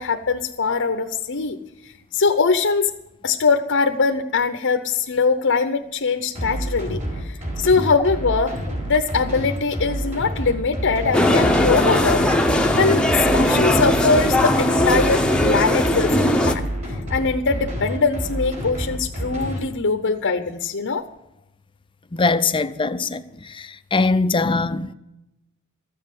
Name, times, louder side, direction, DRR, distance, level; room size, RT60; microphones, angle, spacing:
voice 1, 0.0-1.6 1.8-2.9 3.2-21.1, left 4 dB, 60° left, 0.8 m, -22 dB
sound 1, 6.4-19.6, equal, 35° right, 5.0 m, -28 dB
sound 2, 11.1-16.5, left 1 dB, 5° left, 0.9 m, -19 dB
voice 2, 22.1-23.2 23.5-24.9, left 3 dB, 25° left, 0.5 m, -21 dB
14.0 x 7.6 x 8.3 m
head